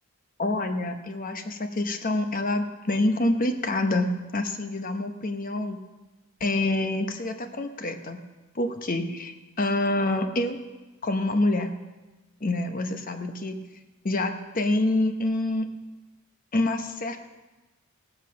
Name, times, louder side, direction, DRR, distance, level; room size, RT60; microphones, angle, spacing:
voice 1, 0.4-5.8 6.4-8.2 8.5-10.6 11.0-11.7 12.4-13.6 14.0-15.7 16.5-17.2, left 2 dB, 40° left, 7 dB, 0.9 m, -26 dB
17.5 x 8.5 x 6.3 m, 1.1 s
head